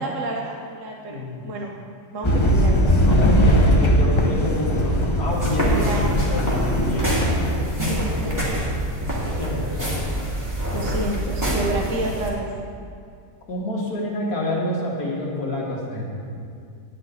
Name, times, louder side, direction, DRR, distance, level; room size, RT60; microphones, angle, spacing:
voice 1, 0.0-1.8 2.1-2.9 5.6-6.3 6.8-7.3 7.8-8.0 10.7-12.5, right 2 dB, 55° right, 0 dB, 1.2 m, -30 dB
voice 2, 1.1-1.5 3.1-6.0 6.5-8.7 9.2-9.8 13.5-16.3, left 1 dB, 70° left, -4 dB, 2.3 m, -28 dB
sound 1, 2.2-7.6, equal, 25° left, 0.6 m, -19 dB
sound 2, 5.3-12.3, equal, 10° right, 2.2 m, -25 dB
10.5 x 5.9 x 8.4 m, 2.3 s
omnidirectional pair, 1.7 m